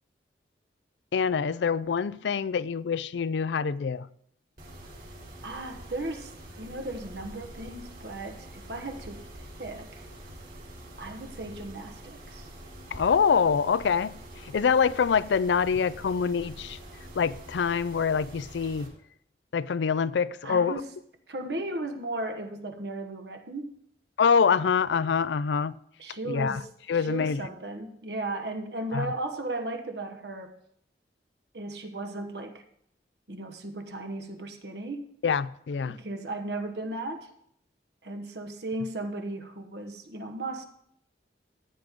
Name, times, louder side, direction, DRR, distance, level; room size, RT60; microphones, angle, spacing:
voice 1, 1.1-4.1 12.9-14.1 14.4-16.8 17.2-18.9 19.5-20.7 24.2-25.7 26.3-26.6 26.9-27.4 28.9-29.1 35.2-36.0, left 6 dB, 80° left, 0.4 m, -25 dB
Mechanisms, 4.6-18.9, right 1 dB, 50° right, 3.2 m, -46 dB
voice 2, 5.4-6.3 6.6-9.3 9.6-10.1 11.0-12.5 20.4-20.9 21.3-23.7 26.0-30.6 31.5-32.6 33.3-35.1 35.8-37.3 38.0-40.6, right 2 dB, 70° right, 1.3 m, -36 dB
14.0 x 9.1 x 3.7 m
head